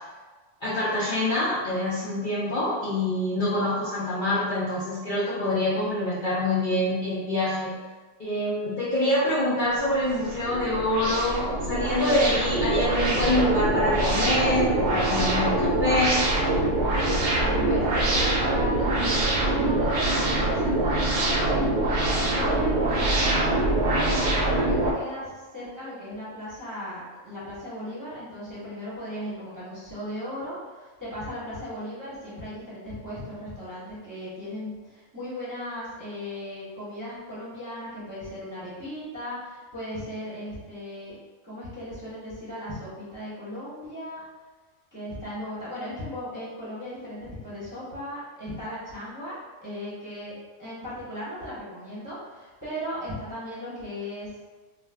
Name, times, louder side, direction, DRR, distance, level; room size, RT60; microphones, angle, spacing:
voice 1, 0.6-7.8 8.2-16.2, left 1 dB, 50° left, -10 dB, 0.6 m, -25 dB
sound 1, 9.8-24.9, right 2 dB, 65° right, 0.9 m, -24 dB
voice 2, 17.6-21.5 22.2-41.2 41.4-44.2 44.9-50.3 50.6-54.3, equal, 15° right, -12 dB, 0.8 m, -37 dB
2.4 x 2.3 x 3.3 m, 1.3 s
omnidirectional pair, 1.3 m